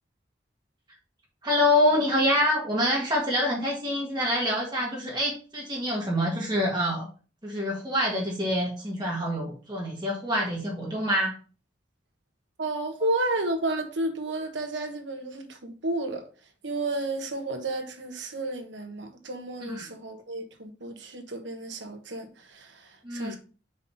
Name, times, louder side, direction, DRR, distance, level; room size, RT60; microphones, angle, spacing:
voice 1, 1.4-7.1 7.4-11.4 19.6-19.9 23.0-23.4, left 1 dB, 25° right, 1.6 m, -26 dB
voice 2, 12.6-16.3 16.6-23.4, right 2 dB, 85° right, 1.3 m, -32 dB
5.1 x 4.0 x 5.5 m
head